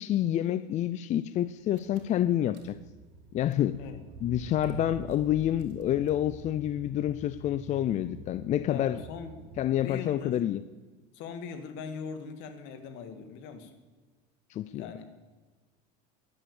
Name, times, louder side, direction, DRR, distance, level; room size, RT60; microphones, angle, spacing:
voice 1, 0.0-2.8 3.3-3.8 4.2-9.0 9.6-10.6 14.5-14.8, left 12 dB, 35° left, 15 dB, 0.5 m, -28 dB
Car / Engine, 1.7-10.1, right 3 dB, 85° right, 2.9 m, -46 dB
voice 2, 8.7-9.5 9.8-10.4 11.1-13.7 14.7-15.1, left 6 dB, 65° left, 8 dB, 2.2 m, -41 dB
12.5 x 11.0 x 8.6 m, 1.3 s
cardioid pair, 135°, 21 cm